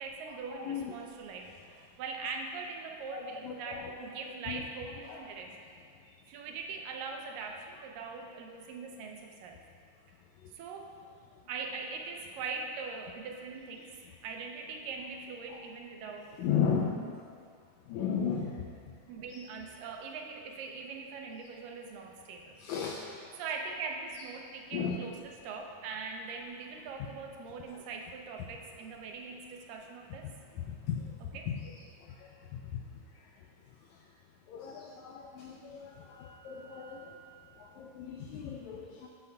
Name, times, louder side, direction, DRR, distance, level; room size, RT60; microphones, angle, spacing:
voice 1, 0.0-5.6 6.3-9.6 10.5-11.0 11.5-14.0 14.2-16.4 19.1-22.6 23.4-30.3 31.3-31.5, right 4 dB, 85° right, 2 dB, 2.5 m, -41 dB
voice 2, 0.5-0.9 3.1-3.9 4.5-4.6 5.1-5.2 16.4-17.1 17.9-18.6 22.6-23.1 24.7-25.0 30.6-31.1 31.5-31.6 32.2-32.8 34.5-37.2 37.6-39.1, left 7 dB, 85° left, 0 dB, 1.6 m, -35 dB
13.0 x 8.1 x 2.3 m, 2.2 s
omnidirectional pair, 3.8 m